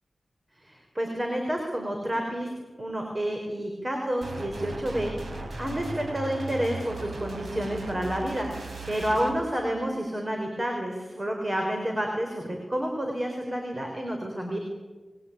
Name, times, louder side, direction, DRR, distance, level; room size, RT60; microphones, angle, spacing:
voice 1, 0.6-2.5 2.8-8.5 8.9-14.6, equal, 30° right, 2 dB, 5.2 m, -30 dB
sound 1, 4.2-9.4, right 3 dB, 75° right, 4.3 m, -37 dB
27.5 x 22.0 x 9.3 m, 1.4 s
wide cardioid pair, 60°, 0 cm